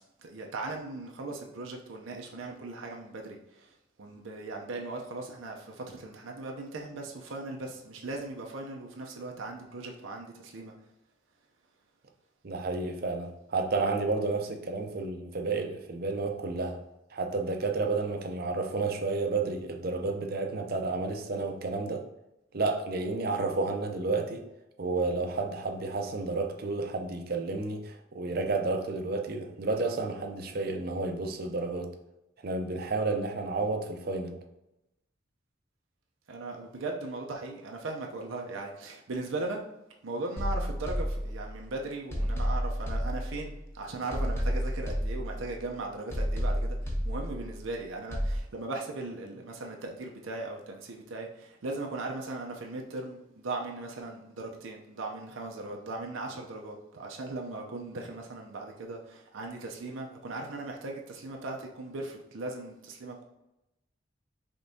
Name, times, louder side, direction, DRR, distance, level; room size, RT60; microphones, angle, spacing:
voice 1, 0.2-10.7 36.3-39.6 40.0-63.2, right 2 dB, 90° right, 0 dB, 0.6 m, -38 dB
voice 2, 12.4-16.8 17.1-22.0 22.5-24.4 24.8-31.9 32.4-34.4, right 3 dB, 50° right, 4 dB, 0.6 m, -31 dB
sound 1, 40.4-41.7 42.1-43.7 44.1-45.7 46.1-47.7 48.1-48.4, equal, 15° left, 0.8 m, -31 dB
5.1 x 3.5 x 2.7 m, 0.92 s
head